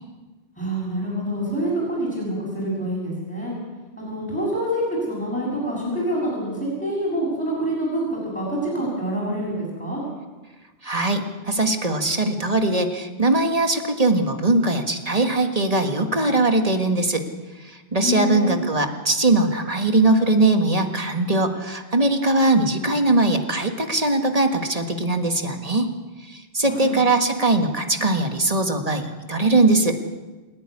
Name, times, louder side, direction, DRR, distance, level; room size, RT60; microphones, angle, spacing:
voice 1, 0.6-3.5 4.0-10.0 18.0-18.6 26.6-27.0, right 1 dB, 10° left, -7 dB, 7.4 m, -26 dB
voice 2, 10.8-17.3 17.6-25.9 26.3-30.0, right 2 dB, 35° right, 5 dB, 1.8 m, -21 dB
28.5 x 11.0 x 9.8 m, 1.2 s
omnidirectional pair, 1.2 m